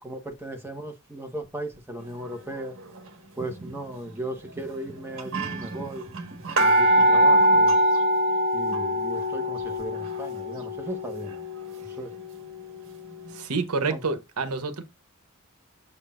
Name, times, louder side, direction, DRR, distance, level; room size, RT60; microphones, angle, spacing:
voice 1, 0.0-2.7 3.4-6.2 6.6-7.8 8.5-11.3 12.0-12.1 13.8-14.0, right 1 dB, 10° right, 1.3 m, -36 dB
sound 1, 3.4-3.7 4.6-4.7 4.9-5.0 5.2-12.8 13.3-13.4, right 1 dB, 60° right, 1.5 m, -23 dB
voice 2, 13.3-14.8, right 4 dB, 90° right, 1.1 m, -28 dB
7.3 x 6.4 x 2.5 m
head